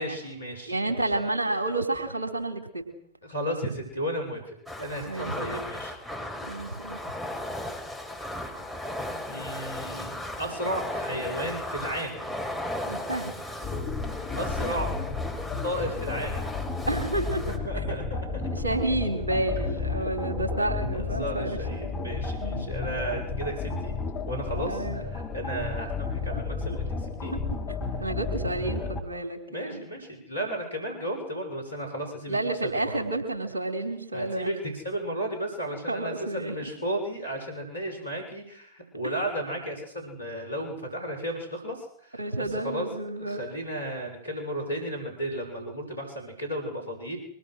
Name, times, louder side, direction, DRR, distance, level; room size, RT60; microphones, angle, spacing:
voice 1, 0.0-1.0 3.2-5.9 9.3-12.3 14.3-15.0 15.6-16.5 17.5-18.4 20.3-20.4 20.9-23.9 24.3-27.3 28.3-28.5 28.8-29.2 29.5-32.4 32.8-33.0 34.1-42.2 42.6-42.9 43.3-47.2, right 1 dB, 80° left, 4 dB, 6.8 m, -34 dB
voice 2, 0.7-2.8 5.0-5.6 6.4-7.0 12.9-13.3 16.9-17.4 18.5-21.9 22.4-22.7 24.7-25.0 27.3-29.9 32.3-34.5 35.9-36.7 39.0-39.3 42.2-43.4, right 2 dB, 75° right, 5 dB, 3.8 m, -30 dB
sound 1, 4.7-17.6, left 1 dB, 5° right, 5.9 m, -36 dB
sound 2, 13.6-29.0, left 4 dB, 35° left, 4.9 m, -32 dB
25.0 x 23.5 x 6.5 m, 0.70 s
figure-of-eight pair, 90°, 0 cm